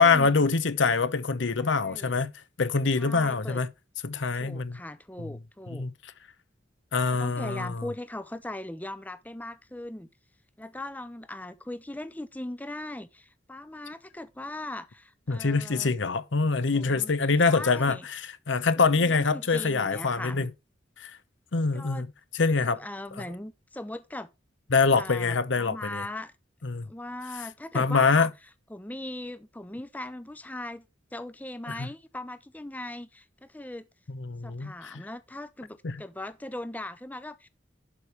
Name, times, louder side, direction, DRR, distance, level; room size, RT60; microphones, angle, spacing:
voice 1, 0.0-2.3 2.6-3.7 4.0-4.8 5.2-5.4 5.7-5.9 6.9-7.9 15.3-20.5 21.0-21.1 21.5-22.8 23.2-23.3 24.7-26.1 26.6-26.9 27.7-28.3 31.7-31.9 34.1-35.0 35.8-36.0, left 4 dB, 80° left, 0.8 m, -25 dB
voice 2, 1.6-2.1 3.0-3.6 4.4-5.9 7.1-10.1 10.6-15.9 16.7-17.1 17.5-18.0 18.8-20.5 21.7-22.0 22.6-24.3 24.9-26.3 26.9-28.3 28.7-30.8 31.1-33.9 34.4-37.5, left 1 dB, 10° left, 0.5 m, -39 dB
11.5 x 5.2 x 4.6 m
head